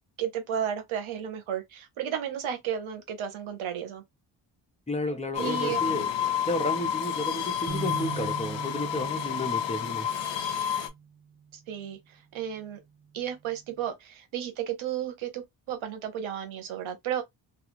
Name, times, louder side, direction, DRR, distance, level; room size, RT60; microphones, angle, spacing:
voice 1, 0.2-4.0 5.4-5.8 11.7-12.0 12.3-12.8 13.1-17.2, right 9 dB, 85° right, 0.9 m, -33 dB
voice 2, 4.9-6.1 6.5-10.1, left 1 dB, 15° left, 0.7 m, -32 dB
sound 1, 5.3-10.9, left 9 dB, 65° left, 0.6 m, -30 dB
sound 2, 7.7-11.2, right 6 dB, 40° right, 0.7 m, -39 dB
2.4 x 2.4 x 2.9 m
cardioid pair, 115°, 47 cm